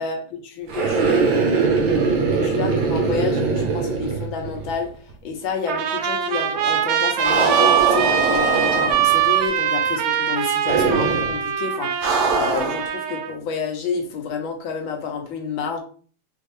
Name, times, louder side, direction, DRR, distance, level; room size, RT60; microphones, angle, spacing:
voice 1, 0.0-1.9 2.3-15.8, left 5 dB, 75° left, 3 dB, 1.6 m, -29 dB
sound 1, 0.7-4.8 5.1-5.2 7.2-9.2 10.7-11.3 12.0-12.9, right 4 dB, 65° right, 1.8 m, -21 dB
Trumpet, 5.7-13.3, right 8 dB, 85° right, 1.4 m, -22 dB
4.3 x 3.6 x 3.2 m, 0.43 s
omnidirectional pair, 2.3 m